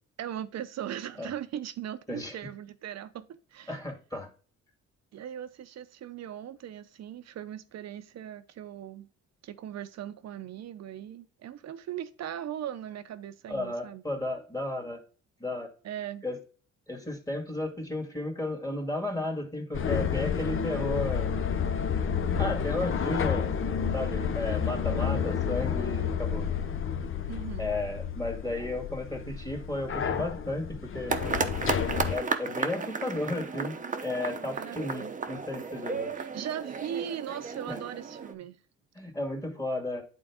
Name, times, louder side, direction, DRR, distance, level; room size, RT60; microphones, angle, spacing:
voice 1, 0.2-3.3 3.5-3.8 5.1-9.1 9.4-14.0 15.8-16.2 27.3-27.7 34.5-35.1 36.2-38.6, right 10 dB, 60° right, 0.7 m, -39 dB
voice 2, 3.7-4.3 13.5-15.0 15.4-15.7 16.2-16.4 16.9-21.3 22.4-23.5 23.9-26.5 27.6-31.2 32.1-36.1 37.7-37.8 39.0-40.0, left 1 dB, 10° left, 2.0 m, -34 dB
sound 1, 19.7-32.2, left 7 dB, 45° left, 0.7 m, -30 dB
sound 2, 31.1-38.3, right 4 dB, 25° right, 0.8 m, -34 dB
8.8 x 3.8 x 3.5 m
cardioid pair, 90°, 30 cm